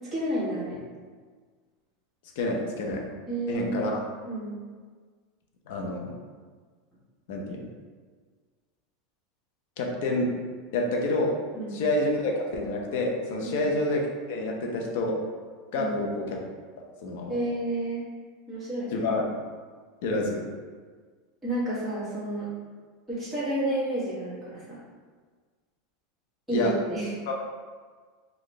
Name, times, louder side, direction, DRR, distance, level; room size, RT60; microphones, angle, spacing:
voice 1, 0.1-0.8 3.3-3.7 4.2-4.5 11.5-11.8 13.4-13.7 15.7-15.9 17.3-18.0 18.5-19.0 21.4-22.5 23.1-24.8 26.5-27.1, right 1 dB, ahead, -12 dB, 1.4 m, -30 dB
voice 2, 2.4-3.0 3.5-4.1 5.7-6.1 7.3-7.6 9.8-10.3 10.7-11.3 11.7-15.2 15.7-16.4 17.0-17.4 18.9-19.3 20.0-20.4 26.5-26.7 27.3-27.4, left 2 dB, 65° left, 0 dB, 0.6 m, -28 dB
4.0 x 2.4 x 3.2 m, 1.5 s
supercardioid pair, 155°, 0 cm